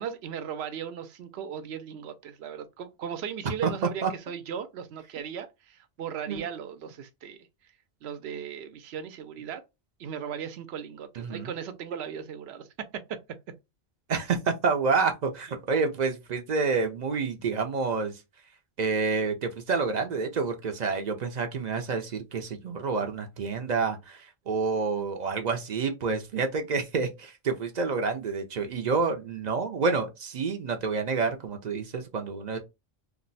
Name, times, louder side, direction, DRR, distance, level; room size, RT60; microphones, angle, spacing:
voice 1, 0.0-7.5 8.0-9.6 10.0-13.2, right 8 dB, 85° right, 0.8 m, -37 dB
voice 2, 11.2-11.5 14.1-18.2 18.8-32.6, right 4 dB, 55° right, 0.5 m, -28 dB
2.6 x 2.1 x 3.9 m
omnidirectional pair, 1.0 m